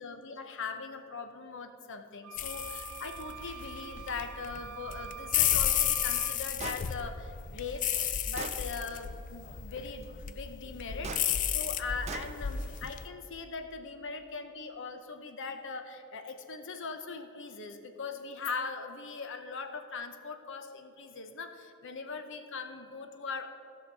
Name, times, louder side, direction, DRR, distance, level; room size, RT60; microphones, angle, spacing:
voice 1, 0.0-11.1 11.5-23.5, left 4 dB, 60° left, 7 dB, 0.8 m, -40 dB
sound 1, 2.2-6.4, right 9 dB, 80° right, 0.4 m, -45 dB
sound 2, 2.4-13.1, left 9 dB, 40° left, 0.4 m, -33 dB
Gunshot gunfire, 6.6-6.8 7.7-7.8 8.4-8.6 11.0-11.3 12.1-12.3, right 4 dB, 30° right, 0.5 m, -39 dB
16.5 x 5.9 x 4.6 m, 2.7 s
head